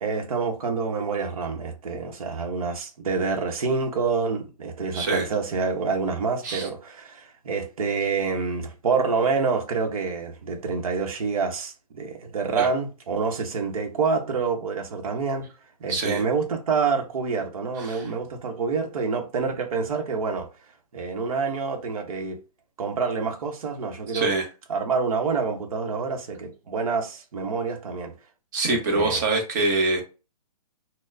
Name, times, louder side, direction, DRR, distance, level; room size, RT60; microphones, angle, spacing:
voice 1, 0.0-15.5 15.8-20.5 20.9-22.4 22.8-24.3 24.7-28.1 28.7-29.2, right 5 dB, 60° right, 0.9 m, -27 dB
voice 2, 4.9-5.2 6.4-6.7 12.6-12.7 15.9-16.2 17.8-18.1 24.1-24.5 28.5-30.0, right 3 dB, 30° right, 0.9 m, -24 dB
4.3 x 2.1 x 2.6 m
hypercardioid pair, 165°, 20 cm